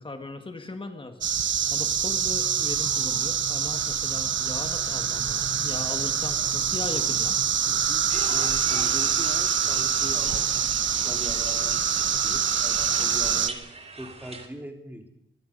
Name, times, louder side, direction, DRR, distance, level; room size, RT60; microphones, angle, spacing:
voice 1, 0.0-7.4, left 2 dB, 25° left, 6 dB, 1.8 m, -38 dB
sound 1, 1.2-13.5, right 7 dB, 65° right, 1.1 m, -25 dB
voice 2, 7.6-13.6 13.9-15.1, right 1 dB, 10° right, 3 dB, 3.8 m, -41 dB
sound 2, 8.1-14.5, right 3 dB, 30° right, 2.9 m, -42 dB
24.0 x 22.5 x 5.5 m, 0.76 s
wide cardioid pair, 155°, 20 cm